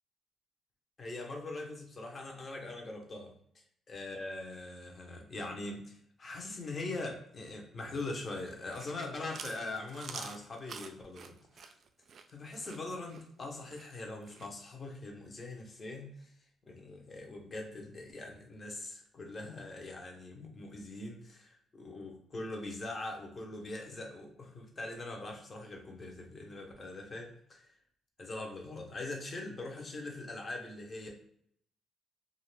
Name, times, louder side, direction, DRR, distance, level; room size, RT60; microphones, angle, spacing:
voice 1, 1.0-3.4 3.9-11.7 12.3-16.3 16.6-27.7 28.2-31.1, left 2 dB, 35° left, 1 dB, 0.9 m, -42 dB
Chewing mastication, 8.5-14.5, right 5 dB, 55° right, 0.3 m, -48 dB
2.6 x 2.4 x 3.2 m, 0.64 s
cardioid pair, 90°, 0 cm